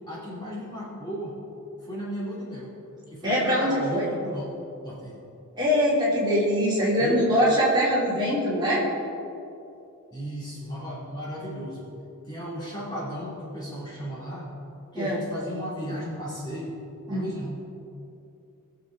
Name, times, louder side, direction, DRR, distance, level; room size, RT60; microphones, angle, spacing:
voice 1, 0.1-1.4 1.8-2.7 3.1-4.5 4.8-5.2 7.0-7.3 10.1-11.8 12.3-14.5 14.9-16.8 17.1-17.6, equal, 20° left, -7 dB, 2.4 m, -35 dB
voice 2, 3.2-4.0 5.6-8.8 14.9-15.2 17.1-17.3, equal, 20° right, -7 dB, 3.2 m, -23 dB
21.0 x 7.2 x 3.8 m, 2.8 s
head